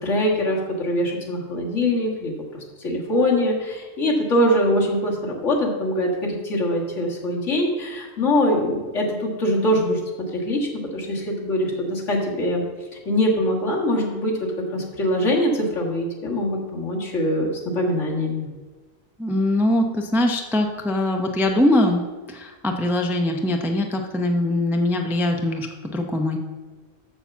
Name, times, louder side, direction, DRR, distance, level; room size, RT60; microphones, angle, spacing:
voice 1, 0.0-2.3 2.8-10.0 10.3-12.6 13.1-14.3 14.7-18.5, left 1 dB, 70° left, -2 dB, 2.0 m, -23 dB
voice 2, 19.2-22.0 22.3-26.4, left 1 dB, 5° right, 3 dB, 0.4 m, -22 dB
6.8 x 5.7 x 7.0 m, 1.3 s
omnidirectional pair, 1.3 m